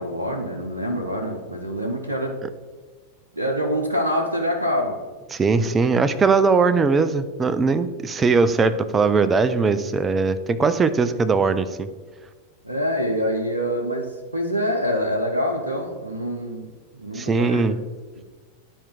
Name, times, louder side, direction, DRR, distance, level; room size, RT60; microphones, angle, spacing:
voice 1, 0.0-2.4 3.3-5.0 5.5-5.7 12.6-16.7 17.0-17.7 18.2-18.3, equal, 80° right, 1 dB, 0.7 m, -25 dB
voice 2, 5.3-11.9 17.1-17.8, right 4 dB, 20° right, 11 dB, 0.4 m, -20 dB
10.0 x 4.4 x 3.8 m, 1.4 s
figure-of-eight pair, 90°, 0 cm